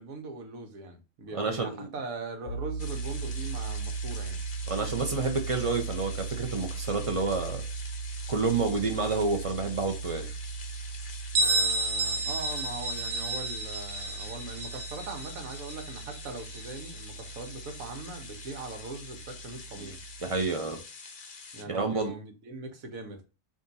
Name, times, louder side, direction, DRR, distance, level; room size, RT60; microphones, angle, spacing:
voice 1, 0.0-4.4 11.3-20.0 21.5-23.2, right 3 dB, 80° right, 1.4 m, -41 dB
voice 2, 1.3-1.9 4.7-7.6 8.3-10.3 19.8-19.9 20.2-20.8 21.7-22.1, right 4 dB, 40° right, 0.5 m, -29 dB
sound 1, 2.5-20.4, right 5 dB, 85° left, 1.0 m, -38 dB
sound 2, 2.8-21.6, left 5 dB, 50° left, 0.7 m, -46 dB
Bell, 11.3-16.9, right 2 dB, 60° right, 1.0 m, -31 dB
3.6 x 2.7 x 4.0 m
omnidirectional pair, 1.4 m